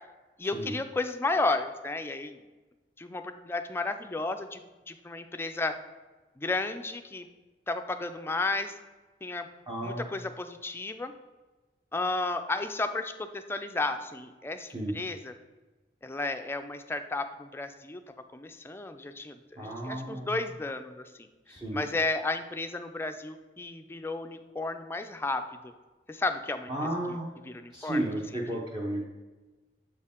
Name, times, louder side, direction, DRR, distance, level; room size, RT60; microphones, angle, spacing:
voice 1, 0.4-2.4 3.0-4.6 4.9-5.8 6.4-7.3 7.7-8.7 9.2-9.5 9.8-11.1 11.9-15.3 16.0-18.0 18.3-25.7 26.1-26.7 27.1-27.2 27.4-28.1 28.3-28.6, left 2 dB, 15° left, 7 dB, 0.3 m, -33 dB
voice 2, 9.7-10.0 14.7-15.0 19.6-20.3 21.5-21.8 26.7-27.3 27.7-29.0, right 1 dB, 25° right, -3 dB, 0.7 m, -33 dB
7.2 x 4.5 x 3.6 m, 1.2 s
head